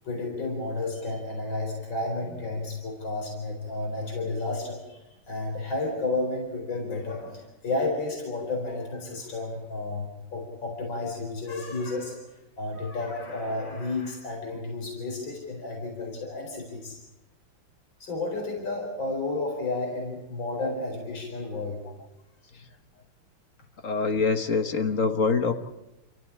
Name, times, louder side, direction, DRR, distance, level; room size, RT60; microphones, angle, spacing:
voice 1, 0.0-12.2 12.6-17.0 18.0-21.8, left 2 dB, 70° left, 0 dB, 5.2 m, -32 dB
voice 2, 23.8-25.5, left 4 dB, 45° left, 7 dB, 1.6 m, -24 dB
28.0 x 15.5 x 8.6 m, 0.99 s
omnidirectional pair, 2.1 m